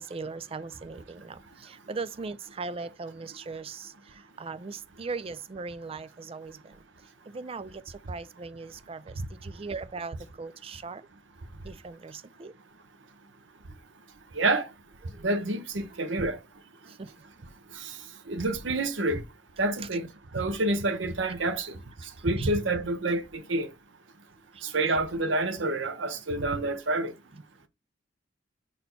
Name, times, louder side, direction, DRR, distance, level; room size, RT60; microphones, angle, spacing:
voice 1, 0.0-3.9 4.4-6.6 7.3-11.0 11.6-12.5 16.9-17.1 22.4-22.5, right 4 dB, 30° right, 0.4 m, -39 dB
voice 2, 14.3-14.7 15.2-16.4 17.7-18.0 18.3-19.2 19.6-20.1 20.3-21.7 22.2-23.7 24.6-27.1, right 2 dB, 85° right, 0.9 m, -28 dB
5.3 x 4.2 x 4.4 m
head